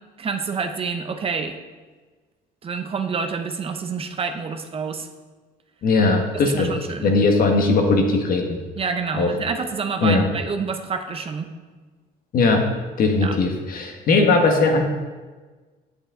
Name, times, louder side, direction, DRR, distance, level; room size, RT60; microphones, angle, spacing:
voice 1, 0.2-1.6 2.6-5.1 6.3-7.2 8.8-11.5 13.2-13.4, right 5 dB, 35° right, 6 dB, 0.7 m, -28 dB
voice 2, 5.8-6.7 7.0-8.6 9.1-9.3 10.0-10.3 12.3-12.6 13.0-14.8, left 3 dB, 60° left, 3 dB, 1.4 m, -19 dB
8.3 x 8.1 x 3.7 m, 1.3 s
cardioid pair, 110°, 17 cm